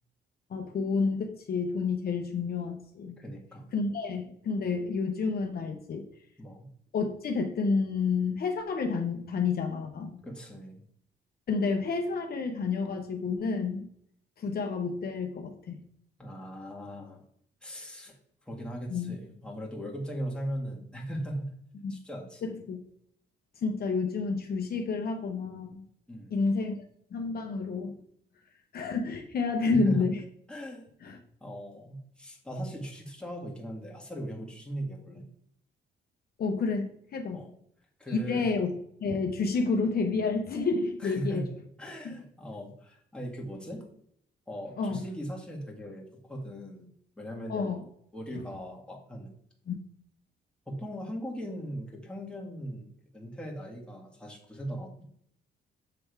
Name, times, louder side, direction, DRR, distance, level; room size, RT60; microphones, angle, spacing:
voice 1, 0.5-3.2 3.7-6.1 6.9-10.2 11.5-13.9 14.4-15.9 18.9-19.2 21.8-21.9 22.7-22.8 23.6-25.9 26.3-26.8 27.1-28.0 28.7-30.2 31.0-31.2 36.4-37.4 38.1-38.7 39.0-41.5 42.0-42.1 44.8-45.0 47.5-47.8 49.7-49.8, left 4 dB, 55° left, 4 dB, 0.8 m, -30 dB
voice 2, 3.2-3.7 6.4-6.7 10.2-10.8 16.2-17.2 17.6-18.2 18.5-21.5 21.9-22.6 26.1-26.3 29.7-30.1 30.5-30.8 31.4-35.2 37.3-37.5 38.0-38.5 41.0-41.5 41.8-43.8 44.5-46.9 47.2-47.7 48.1-49.3 50.7-55.1, right 1 dB, 5° left, -2 dB, 1.7 m, -39 dB
6.8 x 3.5 x 4.6 m, 0.68 s
cardioid pair, 105°, 19 cm